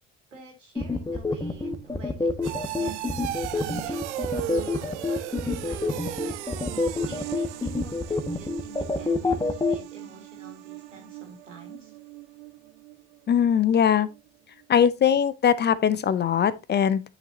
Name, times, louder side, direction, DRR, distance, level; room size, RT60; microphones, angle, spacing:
voice 1, 0.3-3.2 3.8-6.4 7.0-11.9, right 2 dB, 85° right, 2.4 m, -49 dB
sound 1, 0.8-9.8, left 3 dB, 10° left, 1.2 m, -26 dB
sound 2, 0.8-13.5 13.8-14.2 14.6-14.7, right 13 dB, 70° right, 0.7 m, -38 dB
voice 2, 13.3-14.1 14.7-17.0, left 8 dB, 30° left, 0.6 m, -21 dB
9.5 x 5.8 x 2.8 m
figure-of-eight pair, 60°, 36 cm